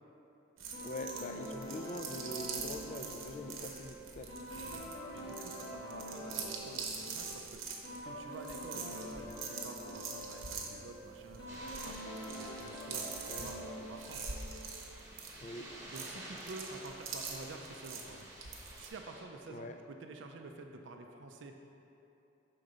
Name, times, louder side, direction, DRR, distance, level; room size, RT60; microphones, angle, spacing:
sound 1, 0.6-18.9, right 5 dB, 90° right, 0.8 m, -45 dB
sound 2, 0.7-14.9, equal, 55° left, 1.2 m, -46 dB
voice 1, 0.8-4.3 13.3-13.5 15.4-15.7 19.5-19.7, left 1 dB, 35° left, 6 dB, 0.3 m, -43 dB
voice 2, 5.1-7.6 8.0-12.0 12.4-14.3 15.9-18.3 18.8-21.5, right 3 dB, 70° right, 3 dB, 0.4 m, -49 dB
sound 3, 11.5-19.2, right 1 dB, 15° right, 1.0 m, -51 dB
6.7 x 3.8 x 5.0 m, 2.9 s
head